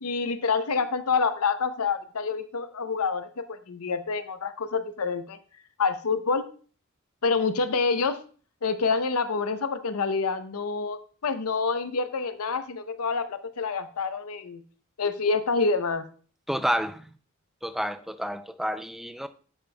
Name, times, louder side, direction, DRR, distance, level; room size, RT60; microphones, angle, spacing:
voice 1, 0.0-5.4 5.8-6.4 7.2-8.2 8.6-11.0 11.2-14.6 15.0-16.1, left 4 dB, 85° left, 0.7 m, -27 dB
voice 2, 16.5-17.0 17.6-19.3, equal, ahead, 0.3 m, -29 dB
11.5 x 5.2 x 2.2 m
head